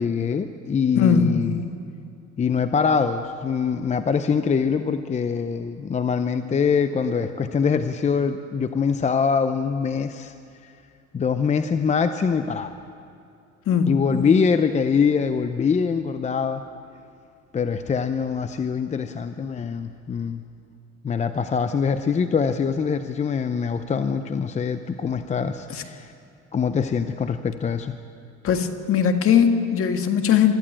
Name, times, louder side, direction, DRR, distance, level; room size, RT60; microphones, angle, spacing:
voice 1, 0.0-1.6 2.4-10.3 10.6-10.7 11.1-12.7 13.9-16.6 17.5-20.4 21.0-26.1 26.5-27.9, left 6 dB, 25° left, 9 dB, 0.7 m, -23 dB
voice 2, 1.0-1.4 13.7-14.0 25.7-25.8 28.4-30.5, left 7 dB, 50° left, 6 dB, 1.7 m, -20 dB
23.5 x 13.5 x 8.9 m, 2.6 s
cardioid pair, 115°, 29 cm